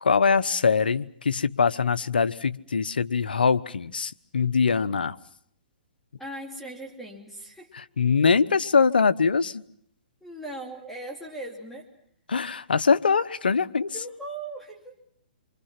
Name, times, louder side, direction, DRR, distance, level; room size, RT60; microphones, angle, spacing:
voice 1, 0.0-5.2 8.0-9.6 12.3-13.9, left 5 dB, 85° left, 14 dB, 1.0 m, -23 dB
voice 2, 6.2-7.7 10.2-11.9 13.9-14.9, right 1 dB, 5° left, 0 dB, 3.3 m, -39 dB
28.5 x 25.0 x 5.9 m, 0.66 s
hypercardioid pair, 135°, 5 cm